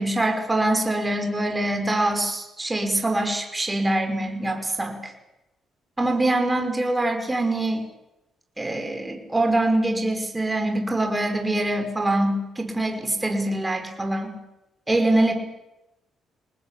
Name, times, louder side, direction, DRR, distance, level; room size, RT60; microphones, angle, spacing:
voice 1, 0.0-5.1 6.0-7.8 8.6-14.4 14.9-15.3, right 1 dB, 15° right, 5 dB, 5.4 m, -24 dB
26.0 x 19.5 x 8.4 m, 0.94 s
cardioid pair, 90°, 0 cm